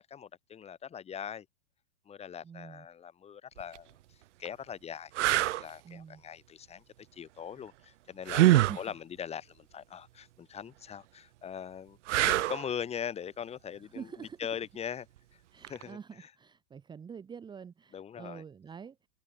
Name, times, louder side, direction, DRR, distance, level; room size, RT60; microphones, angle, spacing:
voice 1, 0.0-1.5 2.1-3.9 4.4-5.1 5.4-6.8 7.1-15.1 15.7-16.3 17.9-18.4, left 8 dB, 15° left, 3.7 m, -41 dB
voice 2, 2.4-2.9 5.8-6.2 8.5-9.0 13.9-14.4 15.5-19.0, right 6 dB, 10° right, 1.9 m, -46 dB
sound 1, 3.6-3.8 4.4-4.5 5.1-5.6 8.3-8.8 12.1-12.7 15.6-15.8, right 15 dB, 60° right, 0.9 m, -24 dB
supercardioid pair, 155°, 40 cm